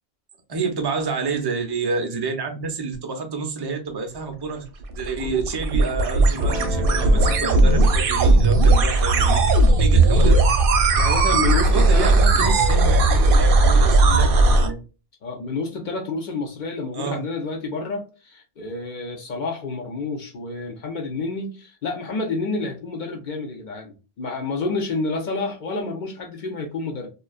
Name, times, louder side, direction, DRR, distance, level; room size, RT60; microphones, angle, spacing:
voice 1, 0.5-4.6 4.9-9.4 9.8-10.4 11.7-14.8 16.9-17.2, right 4 dB, 45° right, 0.3 m, -28 dB
sound 1, 4.8-14.7, right 2 dB, 65° right, 0.7 m, -17 dB
Guitar, 6.3-12.9, left 2 dB, 85° left, 1.0 m, -39 dB
voice 2, 7.1-7.5 11.0-12.9 15.2-27.1, left 3 dB, 55° left, 0.6 m, -29 dB
2.5 x 2.2 x 2.3 m
omnidirectional pair, 1.1 m